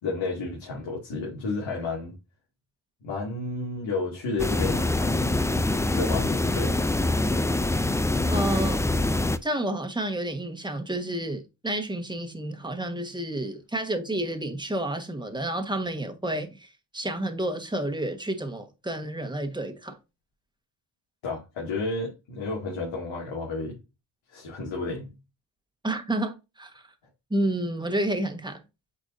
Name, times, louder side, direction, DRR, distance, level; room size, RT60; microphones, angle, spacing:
voice 1, 0.0-2.1 3.0-5.4 5.9-6.8 21.2-23.8 24.3-25.1, left 3 dB, 85° left, 2.4 m, -31 dB
sound 1, 4.4-9.4, left 2 dB, 5° left, 0.4 m, -24 dB
voice 2, 8.3-8.9 9.4-20.0 25.8-26.9 27.3-28.6, right 1 dB, 10° right, 1.4 m, -30 dB
8.2 x 4.8 x 2.7 m
cardioid pair, 85°, 45 cm